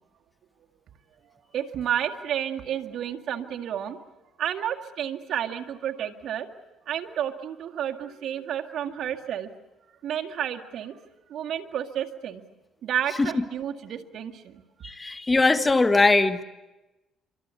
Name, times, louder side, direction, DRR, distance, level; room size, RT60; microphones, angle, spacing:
voice 1, 1.3-4.0 4.4-6.5 6.9-9.5 10.0-11.0 11.3-12.4 12.8-14.6, right 10 dB, 65° right, 4 dB, 1.9 m, -31 dB
voice 2, 14.8-16.4, left 3 dB, 20° left, 10 dB, 1.5 m, -20 dB
26.0 x 25.0 x 8.3 m, 1.1 s
cardioid pair, 95°, 0 cm